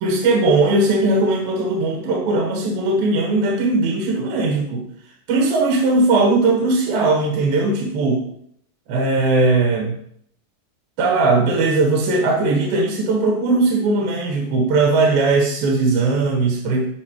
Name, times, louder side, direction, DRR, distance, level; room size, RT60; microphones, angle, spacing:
voice 1, 0.0-4.8 5.3-8.2 8.9-10.0 11.0-16.9, right 3 dB, 75° right, -1 dB, 3.2 m, -18 dB
10.5 x 5.4 x 3.1 m, 0.68 s
omnidirectional pair, 4.2 m